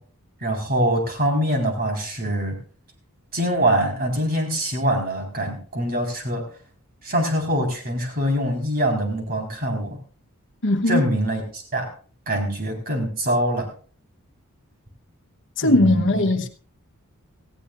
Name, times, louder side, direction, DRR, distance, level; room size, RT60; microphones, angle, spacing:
voice 1, 0.4-2.5 3.3-6.4 7.0-10.0 10.9-11.9 12.3-13.7 15.6-16.2, right 1 dB, 45° right, 4.4 m, -24 dB
voice 2, 10.6-11.0 15.6-16.5, left 1 dB, 60° left, 1.1 m, -19 dB
18.5 x 15.5 x 2.5 m
head